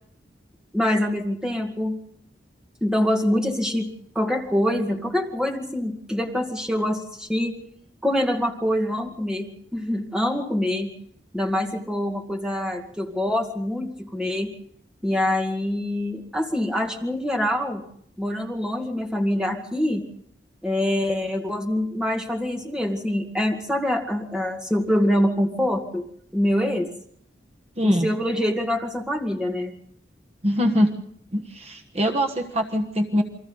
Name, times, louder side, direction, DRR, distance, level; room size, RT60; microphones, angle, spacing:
voice 1, 0.7-2.0 2.8-3.9 4.2-7.5 8.0-10.9 11.3-14.5 15.0-17.8 18.2-20.0 20.6-26.0 26.3-26.9 27.8-29.7, left 1 dB, 5° right, 3 dB, 2.1 m, -25 dB
voice 2, 27.8-28.1 30.4-30.9 31.3-33.2, equal, 35° right, 5 dB, 1.4 m, -23 dB
29.0 x 22.5 x 4.0 m, 0.65 s
head